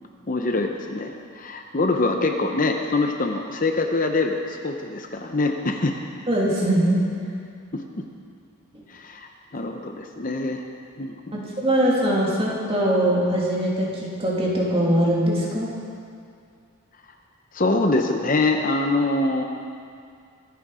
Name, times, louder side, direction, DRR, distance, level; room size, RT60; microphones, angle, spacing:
voice 1, 0.3-6.0 7.7-8.0 8.9-10.6 11.0-11.4 17.5-19.4, left 2 dB, 40° left, 4 dB, 0.8 m, -24 dB
voice 2, 6.3-7.0 8.7-8.8 11.3-15.7, right 1 dB, 25° right, -5 dB, 2.9 m, -22 dB
24.0 x 9.6 x 5.0 m, 2.3 s
head